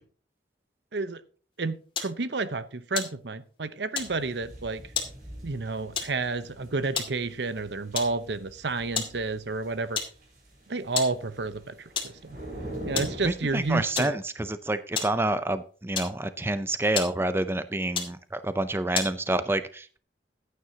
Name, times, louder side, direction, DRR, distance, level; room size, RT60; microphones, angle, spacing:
voice 1, 1.6-4.8 5.4-10.0 10.7-11.9 12.2-12.4 12.9-14.2, right 3 dB, 75° right, 13 dB, 0.8 m, -30 dB
sound 1, 2.0-2.2 2.9-3.6 3.9-4.2 5.0-5.2 6.0-6.2 6.8-7.2 8.0-8.2 9.0-9.2 9.5-9.6 10.0-10.3 11.0-11.2 12.0-12.2 13.0-13.2 14.0-14.2 15.0-15.2 15.9-16.5 17.0-17.3 17.9-18.2 18.9-19.2, left 6 dB, 30° left, 2.1 m, -32 dB
sound 2, 4.0-13.8, right 1 dB, 50° right, 4.6 m, -43 dB
voice 2, 13.2-20.0, right 2 dB, 15° right, 12 dB, 0.5 m, -28 dB
15.0 x 9.4 x 2.8 m, 0.40 s
head